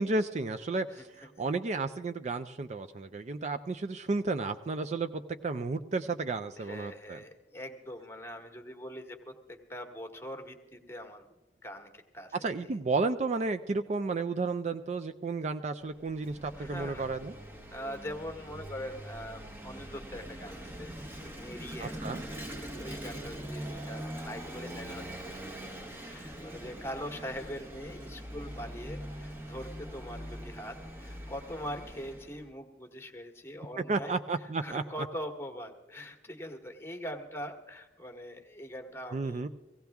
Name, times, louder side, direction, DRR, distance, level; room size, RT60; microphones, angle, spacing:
voice 1, 0.0-7.2 12.4-17.3 21.8-22.2 33.9-34.8 39.1-39.5, right 3 dB, 40° right, 9 dB, 0.4 m, -32 dB
voice 2, 6.6-12.8 16.6-17.2 17.7-22.0 22.5-25.0 25.3-34.1 34.6-39.5, equal, 15° left, 6 dB, 1.2 m, -43 dB
Vehicle / Engine, 15.8-32.5, right 1 dB, 15° right, 0.8 m, -43 dB
17.5 x 16.0 x 3.5 m, 1.1 s
head